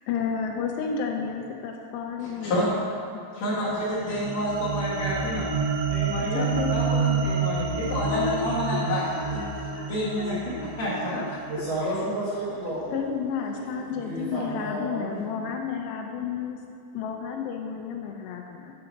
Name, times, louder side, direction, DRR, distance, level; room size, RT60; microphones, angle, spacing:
voice 1, 0.1-2.6 6.2-6.8 7.8-9.9 10.2-11.4 12.9-16.6 16.9-18.7, left 6 dB, 80° left, 3 dB, 2.6 m, -32 dB
voice 2, 2.2-2.7 3.3-5.5 5.9-9.4 9.7-10.4 10.8-11.1 13.6-13.7, equal, 55° left, -8 dB, 2.1 m, -29 dB
sound 1, 3.7-12.1, right 5 dB, 90° right, 3.2 m, -29 dB
voice 3, 11.5-12.9 13.7-15.1, right 1 dB, 60° right, -10 dB, 1.8 m, -31 dB
7.0 x 6.8 x 5.1 m, 2.7 s
omnidirectional pair, 5.0 m